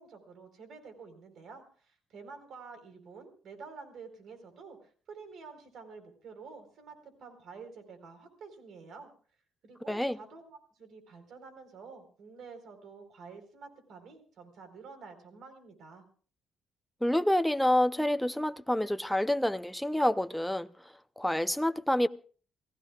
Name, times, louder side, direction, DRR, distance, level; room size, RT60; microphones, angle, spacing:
voice 1, 0.0-9.1 9.6-16.0, right 5 dB, 70° right, 4.2 m, -49 dB
voice 2, 17.0-20.7 21.2-22.1, left 1 dB, 5° left, 0.7 m, -27 dB
29.0 x 16.0 x 2.4 m
cardioid pair, 90°, 0 cm